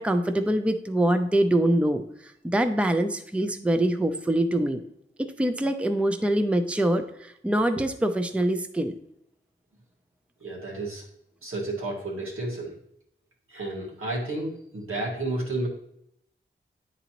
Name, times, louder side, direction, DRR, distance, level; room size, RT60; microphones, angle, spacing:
voice 1, 0.0-2.0 2.5-4.8 5.2-9.0, right 1 dB, 5° right, 8 dB, 0.5 m, -24 dB
voice 2, 10.4-11.1 11.4-12.7 13.5-15.7, right 2 dB, 90° right, -2 dB, 2.0 m, -31 dB
10.5 x 4.0 x 3.0 m, 0.74 s
wide cardioid pair, 90°, 21 cm